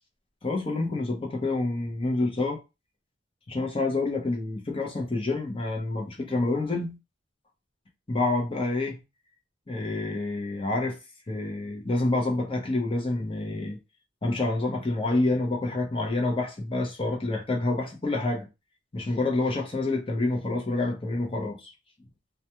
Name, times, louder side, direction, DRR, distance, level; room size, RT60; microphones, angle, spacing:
voice 1, 0.4-2.6 3.5-7.0 8.1-9.0 9.7-11.0 11.3-13.8 14.2-18.5 18.9-21.7, left 2 dB, 30° left, 0.7 m, -28 dB
2.3 x 2.2 x 2.9 m
head